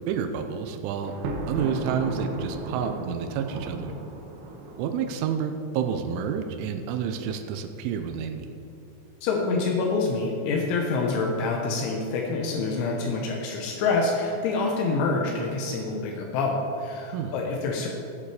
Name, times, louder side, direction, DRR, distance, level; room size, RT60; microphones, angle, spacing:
voice 1, 0.1-1.2 1.5-3.9 4.8-8.5 17.1-17.3, right 7 dB, 90° right, 6 dB, 3.2 m, -29 dB
Thunder, 1.0-5.2, right 2 dB, 70° right, 2.8 m, -34 dB
voice 2, 9.2-17.9, left 3 dB, 80° left, 0 dB, 3.4 m, -26 dB
16.5 x 7.3 x 4.9 m, 2.7 s
omnidirectional pair, 5.4 m